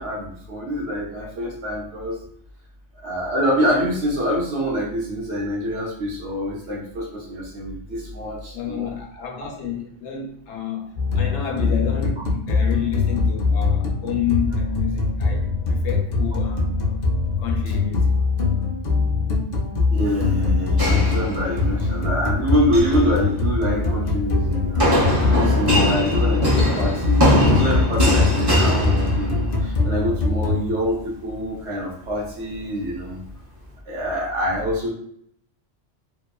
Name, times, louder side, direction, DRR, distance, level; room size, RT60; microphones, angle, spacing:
voice 1, 0.0-2.2 3.0-8.9 9.4-9.5 19.9-24.9 25.3-33.2 33.9-34.9, equal, 70° right, 1.0 m, -25 dB
voice 2, 8.5-18.2, left 9 dB, 80° left, 0.9 m, -30 dB
sound 1, 11.0-30.6, left 4 dB, 60° left, 0.4 m, -22 dB
sound 2, 20.8-21.9 22.5-23.0 24.8-29.6, equal, 30° right, 0.5 m, -21 dB
2.8 x 2.2 x 2.3 m
omnidirectional pair, 1.2 m